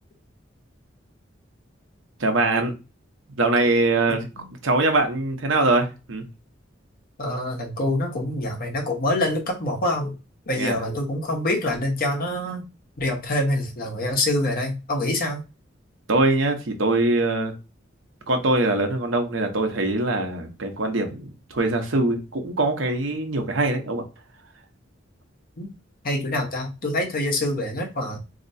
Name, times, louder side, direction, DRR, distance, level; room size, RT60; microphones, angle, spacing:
voice 1, 2.2-2.7 3.4-4.3 4.6-6.2 10.5-10.8 16.1-17.5 18.3-24.0, right 2 dB, 90° right, 4 dB, 0.9 m, -22 dB
voice 2, 7.2-10.1 10.5-12.6 13.0-15.4 25.6-25.7 26.0-28.2, left 1 dB, 50° left, 2 dB, 1.0 m, -25 dB
4.2 x 2.9 x 2.7 m, 0.28 s
head